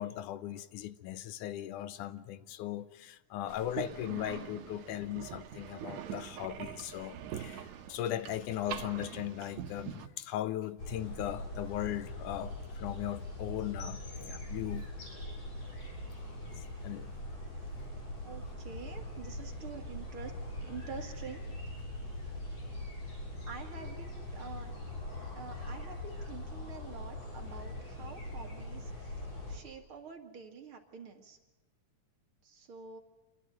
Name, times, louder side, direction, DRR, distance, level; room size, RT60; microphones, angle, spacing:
voice 1, 0.0-14.9 16.5-17.1, left 12 dB, 90° left, 2.4 m, -38 dB
sound 1, 3.5-10.1, right 9 dB, 70° right, 2.4 m, -43 dB
sound 2, 10.8-29.6, left 1 dB, 60° left, 8.4 m, -42 dB
voice 2, 18.2-21.4 23.0-23.2 23.5-24.7 25.4-31.4 32.4-33.0, right 5 dB, 45° right, 2.6 m, -47 dB
27.5 x 12.0 x 9.2 m
omnidirectional pair, 3.5 m